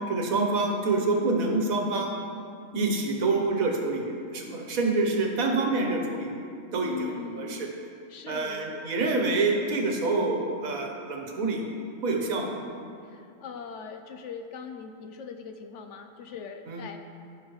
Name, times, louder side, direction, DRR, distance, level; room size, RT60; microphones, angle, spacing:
voice 1, 0.1-2.1 2.7-6.3 6.7-7.7 8.3-11.6 12.0-12.5 16.7-16.8, right 3 dB, 80° right, 1 dB, 1.5 m, -27 dB
voice 2, 6.8-7.6 8.1-8.8 13.0-17.0, left 6 dB, 65° left, 6 dB, 0.8 m, -40 dB
15.0 x 5.9 x 3.1 m, 2.5 s
omnidirectional pair, 1.5 m